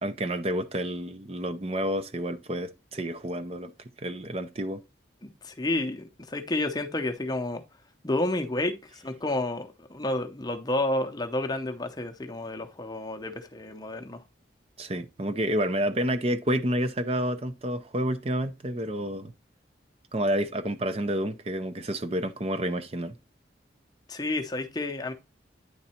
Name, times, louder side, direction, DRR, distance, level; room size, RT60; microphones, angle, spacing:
voice 1, 0.0-3.7 4.0-4.8 14.8-19.3 20.1-23.2, right 1 dB, 30° right, 0.6 m, -29 dB
voice 2, 5.4-7.6 8.0-14.2 24.1-25.1, left 2 dB, 20° left, 0.7 m, -30 dB
9.5 x 3.9 x 4.3 m
head